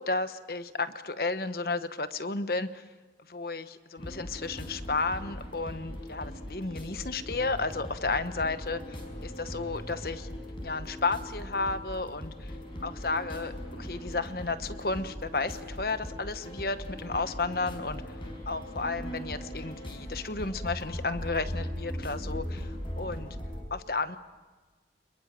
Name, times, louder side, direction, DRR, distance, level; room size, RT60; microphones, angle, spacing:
voice 1, 0.0-2.8 3.3-10.3 10.6-12.5 12.8-18.0 18.5-23.4 23.7-24.2, left 3 dB, 55° left, 11 dB, 1.1 m, -33 dB
sound 1, 4.0-23.6, equal, 30° left, 5.4 m, -39 dB
27.5 x 22.0 x 7.6 m, 1.3 s
head